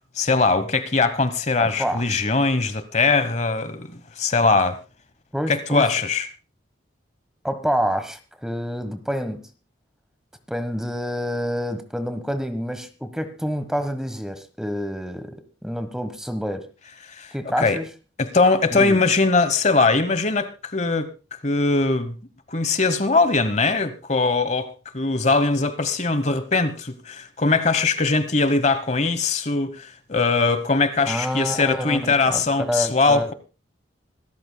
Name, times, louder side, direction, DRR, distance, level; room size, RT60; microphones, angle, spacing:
voice 1, 0.1-4.8 5.5-6.3 17.1-17.3 17.6-17.8 18.2-21.1 21.4-22.1 22.5-33.3, left 3 dB, 35° left, 1.1 m, -21 dB
voice 2, 1.6-2.0 5.3-5.9 7.4-9.5 10.5-16.7 17.3-17.9 18.7-19.0 31.1-33.3, equal, 5° right, 1.2 m, -28 dB
26.0 x 13.5 x 2.2 m
head